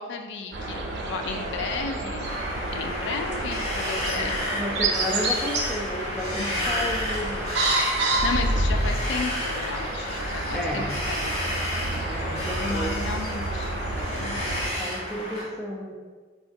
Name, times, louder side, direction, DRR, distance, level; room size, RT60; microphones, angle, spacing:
voice 1, 0.0-2.3 2.7-4.6 6.4-6.9 8.0-11.3 11.7-14.7, left 4 dB, 75° left, 5 dB, 0.3 m, -34 dB
sound 1, 0.5-14.7, right 2 dB, 70° right, 0.5 m, -29 dB
Wind, 2.2-15.4, left 1 dB, 35° left, 1.0 m, -32 dB
voice 2, 4.1-7.8 10.5-11.0 12.0-13.1 14.8-15.9, equal, ahead, -3 dB, 0.4 m, -33 dB
3.9 x 2.4 x 2.5 m, 1.4 s
head